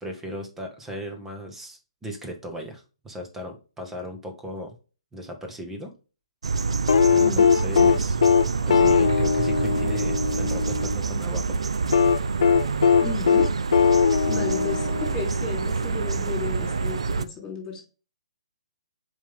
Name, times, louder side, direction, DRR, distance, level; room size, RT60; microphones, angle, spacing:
voice 1, 0.0-4.7 5.1-5.9 7.1-8.2 8.7-11.6, equal, 10° right, 4 dB, 1.8 m, -37 dB
sound 1, 6.4-17.2, right 4 dB, 70° right, 0.6 m, -27 dB
sound 2, 6.9-11.0 11.9-15.5 16.9-17.0, left 6 dB, 65° left, 0.6 m, -20 dB
voice 2, 7.2-7.5 13.0-13.5 14.3-17.8, left 4 dB, 15° left, 1 dB, 4.0 m, -33 dB
7.3 x 5.4 x 3.7 m, 0.33 s
figure-of-eight pair, 140°, 3 cm